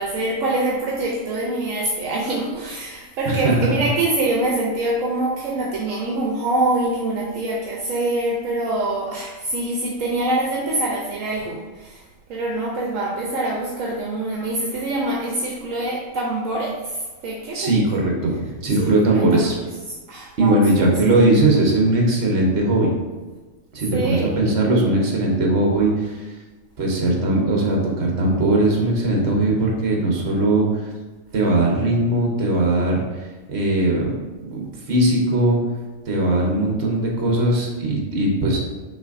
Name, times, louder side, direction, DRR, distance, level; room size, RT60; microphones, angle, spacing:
voice 1, 0.0-12.0 12.3-17.8 18.3-18.4 18.7-20.9 23.9-24.4, right 2 dB, 75° right, -2 dB, 1.0 m, -25 dB
voice 2, 3.2-3.7 17.5-19.5 20.4-22.9 23.7-26.3 26.8-30.9 31.3-33.0 33.5-34.2 34.5-35.6 36.1-38.6, right 2 dB, 50° right, -1 dB, 1.2 m, -19 dB
5.9 x 3.3 x 2.5 m, 1.3 s
omnidirectional pair, 1.4 m